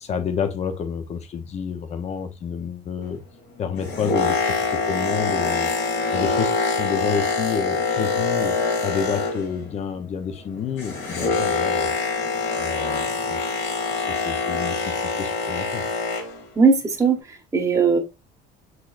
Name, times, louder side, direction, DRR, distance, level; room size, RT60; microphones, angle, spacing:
voice 1, 0.0-3.2 3.6-5.7 6.1-11.9 12.6-13.5 14.0-15.9, left 6 dB, 35° left, 0.8 m, -29 dB
Boat Water vehicle, 3.6-9.7 10.0-16.4 17.1-17.2, left 4 dB, 65° left, 2.1 m, -25 dB
voice 2, 16.6-18.0, right 5 dB, 15° right, 1.1 m, -19 dB
6.1 x 3.2 x 2.5 m
cardioid pair, 135°, 19 cm